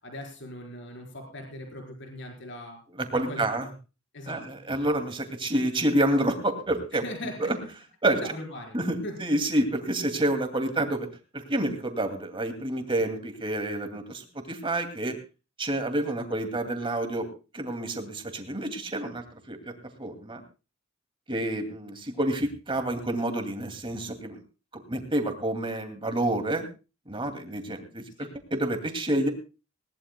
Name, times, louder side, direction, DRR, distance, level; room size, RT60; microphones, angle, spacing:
voice 1, 0.0-2.8 3.1-3.5 4.1-4.6 7.0-7.5 8.1-8.8 9.0-9.1 28.2-28.3, left 1 dB, 60° left, 2 dB, 4.4 m, -39 dB
voice 2, 3.0-3.7 4.3-7.0 7.4-7.6 8.0-8.2 8.7-11.1 11.3-15.1 15.6-17.3 17.5-19.6 20.0-20.4 21.3-24.4 24.9-26.7 27.1-29.3, right 1 dB, 25° right, 6 dB, 2.4 m, -28 dB
20.5 x 18.0 x 2.2 m, 0.31 s
head